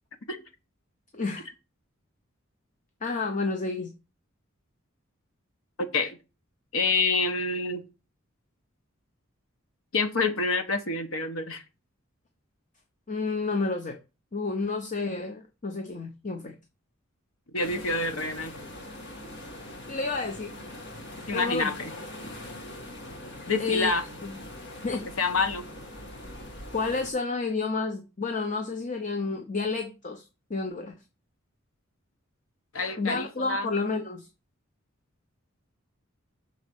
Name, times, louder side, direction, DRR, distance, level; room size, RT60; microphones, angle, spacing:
voice 1, 1.1-1.5 3.0-3.9 13.1-14.0 14.3-16.5 19.9-20.5 21.3-21.7 23.6-23.9 24.2-24.4 24.8-25.1 26.7-30.9 33.0-34.3, left 3 dB, 40° left, 0.8 m, -30 dB
voice 2, 5.8-6.2 6.7-7.8 9.9-11.6 17.5-18.6 21.3-21.9 23.5-24.0 25.2-25.7 32.7-33.7, left 3 dB, 80° left, 1.2 m, -27 dB
sound 1, 17.6-27.1, left 1 dB, 55° left, 1.9 m, -42 dB
6.3 x 4.1 x 6.4 m
head